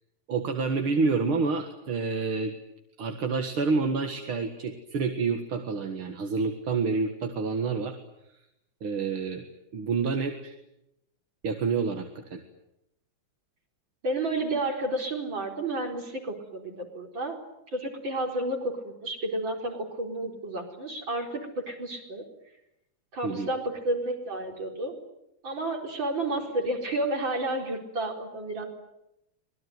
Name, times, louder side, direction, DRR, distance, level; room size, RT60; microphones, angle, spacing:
voice 1, 0.3-2.5 3.0-8.0 8.8-9.4 9.7-10.5 11.4-12.4 23.2-23.5, right 4 dB, 85° right, 4 dB, 2.7 m, -28 dB
voice 2, 14.0-17.4 17.7-22.2 23.1-24.9 25.4-28.7, right 2 dB, 65° right, 2 dB, 5.1 m, -31 dB
26.0 x 20.5 x 9.4 m, 0.85 s
omnidirectional pair, 2.3 m